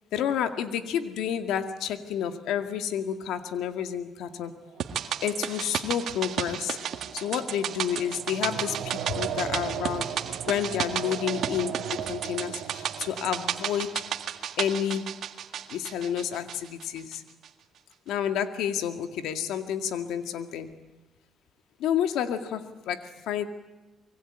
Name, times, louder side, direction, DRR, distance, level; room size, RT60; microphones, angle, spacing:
voice 1, 0.1-4.5 5.2-6.8 7.1-13.9 14.6-15.0 15.7-17.2 18.1-20.7 21.8-23.5, left 9 dB, 85° left, 8 dB, 2.1 m, -30 dB
sound 1, 4.2-15.1, right 9 dB, 85° right, 2.6 m, -39 dB
sound 2, 4.8-17.2 17.4-17.5, right 9 dB, 70° right, 1.8 m, -33 dB
25.0 x 23.0 x 8.9 m, 1.1 s
cardioid pair, 90°, 0 cm